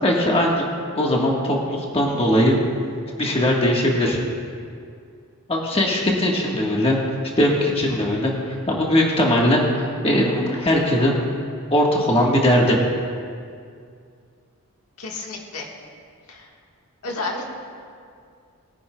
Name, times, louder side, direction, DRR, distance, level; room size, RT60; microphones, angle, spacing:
voice 1, 0.0-0.7 1.0-2.6 3.2-4.2 5.5-7.0 7.4-11.1 11.7-12.8, left 1 dB, 25° left, -2 dB, 1.3 m, -20 dB
voice 2, 15.0-15.7 16.3-16.5 17.0-17.5, left 3 dB, 85° left, 0 dB, 1.4 m, -31 dB
21.0 x 9.8 x 2.2 m, 2.3 s
head